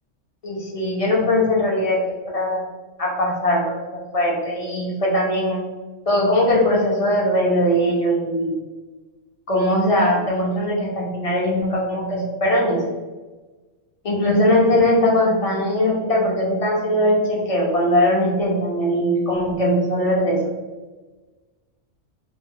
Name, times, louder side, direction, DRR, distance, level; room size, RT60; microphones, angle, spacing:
voice 1, 0.4-2.0 2.3-2.6 3.0-3.8 4.1-5.6 6.1-8.6 9.5-12.8 14.0-20.4, left 1 dB, 50° left, -3 dB, 0.4 m, -20 dB
2.6 x 2.0 x 3.6 m, 1.3 s
omnidirectional pair, 1.3 m